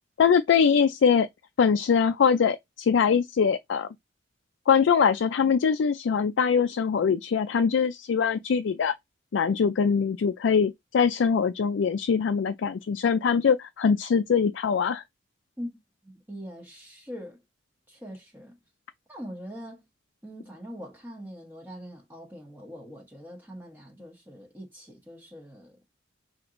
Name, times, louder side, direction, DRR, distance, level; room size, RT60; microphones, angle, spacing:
voice 1, 0.2-1.3 1.6-3.9 4.7-8.9 9.3-15.0, left 6 dB, 75° left, 0.4 m, -23 dB
voice 2, 16.0-17.4 17.9-18.6 19.1-19.8 20.2-25.8, equal, 10° right, 1.0 m, -42 dB
5.9 x 2.9 x 2.5 m
head